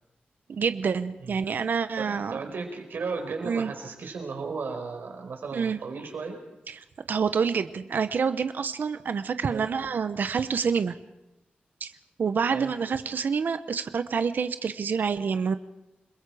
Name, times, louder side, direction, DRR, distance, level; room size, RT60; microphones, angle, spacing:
voice 1, 0.5-2.4 3.4-3.7 5.5-5.8 6.7-11.0 11.8-11.9 12.2-15.6, right 6 dB, 70° right, 11 dB, 0.9 m, -27 dB
voice 2, 2.0-6.4 9.5-9.7 12.5-12.7, right 4 dB, 90° right, 4 dB, 4.7 m, -35 dB
29.0 x 21.5 x 4.9 m, 0.93 s
wide cardioid pair, 150°, 3 cm